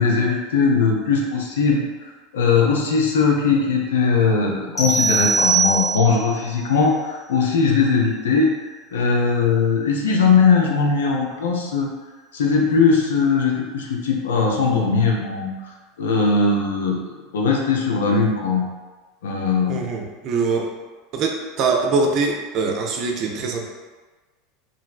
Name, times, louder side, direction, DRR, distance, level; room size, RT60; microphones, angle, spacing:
voice 1, 0.0-11.9 12.3-17.0 17.3-18.7 19.2-19.8, left 5 dB, 65° left, 0 dB, 0.4 m, -20 dB
sound 1, 4.8-6.3, right 4 dB, 15° left, 0.6 m, -20 dB
voice 2, 19.7-20.7 21.1-23.7, right 4 dB, 40° right, 1 dB, 0.4 m, -23 dB
3.0 x 2.5 x 2.3 m, 1.3 s
figure-of-eight pair, 80°, 0 cm